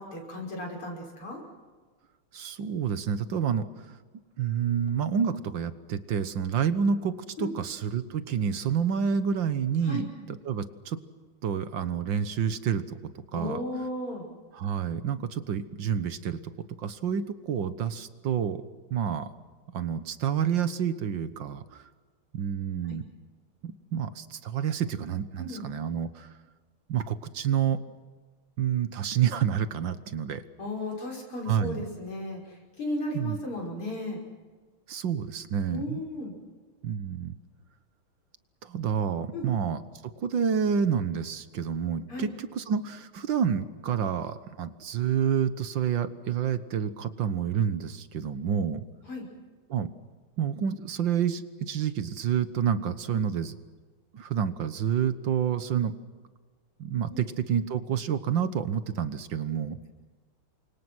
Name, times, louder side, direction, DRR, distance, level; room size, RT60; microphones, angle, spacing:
voice 1, 0.0-1.4 7.4-7.6 9.8-10.1 13.3-14.3 22.8-23.0 25.4-25.7 30.6-32.4 32.8-34.2 35.7-36.3 39.3-39.5 42.1-42.3 49.1-49.3 57.1-57.2, left 1 dB, 75° left, 0 dB, 6.6 m, -35 dB
voice 2, 2.3-3.7 4.4-11.0 11.4-13.0 13.3-13.6 14.5-16.4 16.8-18.6 18.9-19.3 19.7-21.8 22.3-23.0 23.6-26.3 26.9-27.8 28.6-30.4 31.5-31.8 33.1-33.4 34.9-36.0 36.8-37.4 38.6-39.8 40.2-48.8 49.7-49.9 50.4-53.5 54.1-55.9 56.8-59.8, right 8 dB, 60° right, 12 dB, 1.8 m, -28 dB
29.5 x 25.0 x 6.2 m, 1.4 s
omnidirectional pair, 2.4 m